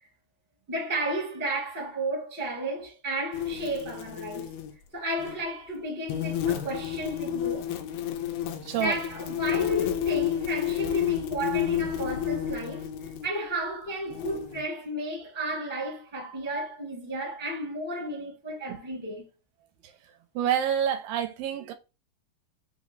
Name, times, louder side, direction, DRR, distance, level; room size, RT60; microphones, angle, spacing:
voice 1, 0.7-4.5 4.9-7.7 8.8-12.9 13.2-19.2, right 1 dB, 5° right, 0.7 m, -33 dB
sound 1, 3.3-4.7 5.2-5.4 6.1-13.3 14.1-14.6, left 10 dB, 85° left, 2.4 m, -30 dB
voice 2, 8.6-9.0 18.7-18.8 20.4-21.7, right 9 dB, 90° right, 2.4 m, -27 dB
5.6 x 2.0 x 4.0 m
omnidirectional pair, 4.0 m